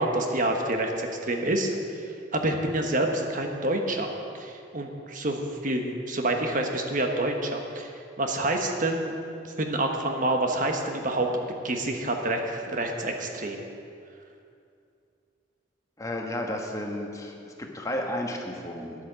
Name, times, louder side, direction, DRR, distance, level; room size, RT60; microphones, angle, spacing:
voice 1, 0.0-1.7 2.3-7.9 8.2-9.2 9.4-11.3 11.6-13.6, right 1 dB, 45° right, 3 dB, 1.2 m, -27 dB
voice 2, 16.0-19.0, left 1 dB, 15° left, 1 dB, 1.3 m, -32 dB
10.5 x 8.5 x 6.9 m, 2.5 s
head